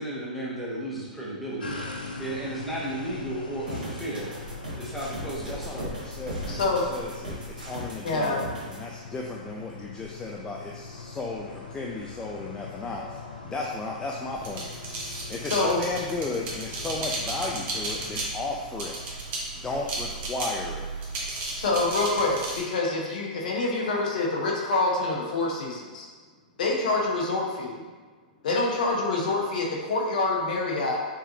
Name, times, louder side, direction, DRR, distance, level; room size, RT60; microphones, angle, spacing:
voice 1, 0.0-1.7 2.2-4.3 4.8-5.9, right 1 dB, ahead, -7 dB, 1.0 m, -34 dB
sound 1, 1.6-18.3, left 3 dB, 90° left, 0.5 m, -41 dB
sound 2, 3.7-8.8, equal, 85° right, 1.3 m, -38 dB
voice 2, 5.4-6.6 6.9-8.4 8.7-13.2 13.4-14.7 15.3-19.0 19.6-20.9, left 3 dB, 15° left, -2 dB, 0.3 m, -34 dB
voice 3, 6.5-6.9 8.0-8.4 15.4-15.8 21.5-26.1 26.6-27.7 28.4-31.0, left 3 dB, 65° left, -2 dB, 0.9 m, -26 dB
sound 3, 14.4-22.6, right 2 dB, 35° right, 1.0 m, -34 dB
4.9 x 2.6 x 2.7 m, 1.4 s
hypercardioid pair, 110°, 5 cm